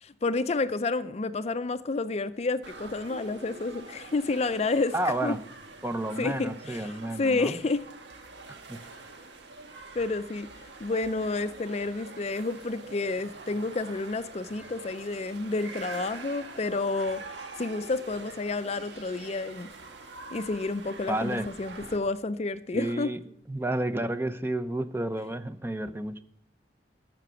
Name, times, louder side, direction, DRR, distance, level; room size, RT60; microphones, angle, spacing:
voice 1, 0.0-4.9 5.2-5.3 6.2-6.8 7.2-7.8 10.0-10.5 10.8-17.2 17.6-19.7 20.3-23.1, left 3 dB, 35° left, 0.4 m, -30 dB
sound 1, 2.6-22.0, right 3 dB, 85° right, 1.4 m, -45 dB
voice 2, 4.9-5.4 5.8-7.6 8.5-8.8 21.1-21.5 22.7-23.2 23.5-26.2, right 1 dB, 15° right, 0.5 m, -31 dB
13.5 x 5.9 x 6.9 m
head